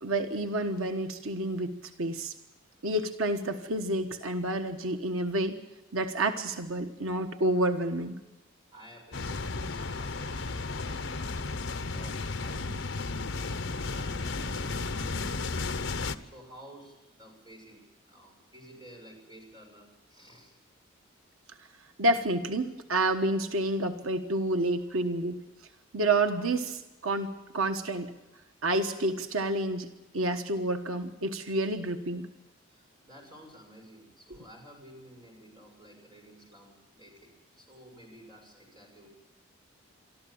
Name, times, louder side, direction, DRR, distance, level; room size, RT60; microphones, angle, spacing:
voice 1, 0.0-2.3 2.8-5.6 5.9-8.2 22.0-25.4 25.9-28.1 28.6-29.9 30.1-32.3, right 2 dB, 85° right, 7 dB, 1.3 m, -29 dB
voice 2, 8.7-15.8 16.2-20.5 24.8-25.1 32.7-39.1, equal, 20° right, 0 dB, 6.5 m, -53 dB
sound 1, 9.1-16.1, left 3 dB, 65° left, 1.0 m, -33 dB
24.0 x 14.0 x 8.7 m, 1.0 s
head